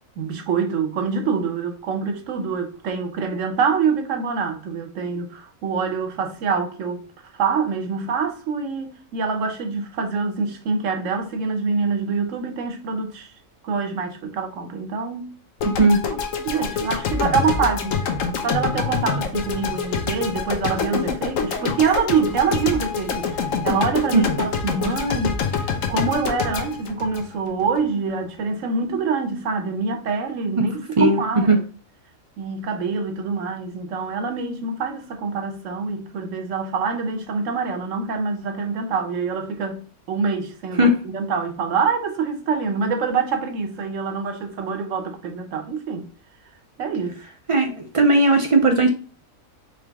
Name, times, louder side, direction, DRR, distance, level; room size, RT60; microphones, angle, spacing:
voice 1, 0.2-7.0 7.3-13.3 13.6-15.3 16.1-18.0 18.4-31.7 32.4-46.1 46.8-47.2, right 5 dB, 70° right, 1.2 m, -25 dB
sound 1, 15.6-27.8, left 5 dB, 75° left, 1.1 m, -26 dB
voice 2, 15.6-16.0 24.1-24.2 31.0-31.6 40.8-40.9 47.5-48.9, right 2 dB, 50° right, 0.4 m, -17 dB
3.9 x 3.2 x 3.4 m
omnidirectional pair, 1.4 m